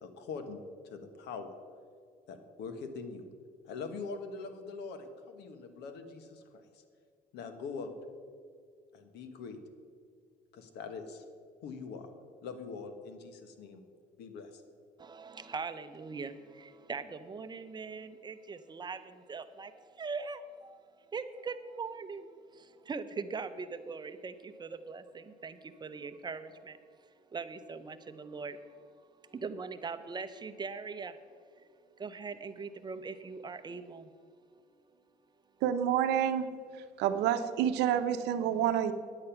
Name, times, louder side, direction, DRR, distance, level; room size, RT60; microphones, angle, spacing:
voice 1, 0.0-0.6 0.9-1.5 2.3-3.2 3.7-6.6 7.3-7.9 8.9-9.6 10.5-11.2 11.6-12.1 12.4-13.8 14.2-14.6, left 4 dB, 80° left, 8 dB, 1.2 m, -43 dB
voice 2, 15.0-28.6 29.2-31.2 31.6-31.7 32.0-34.3 34.6-34.7, right 4 dB, 25° right, 11 dB, 0.6 m, -41 dB
voice 3, 35.6-36.5 37.0-38.9, right 10 dB, 85° right, 9 dB, 0.7 m, -28 dB
9.7 x 8.5 x 5.8 m, 2.2 s
cardioid pair, 110°, 17 cm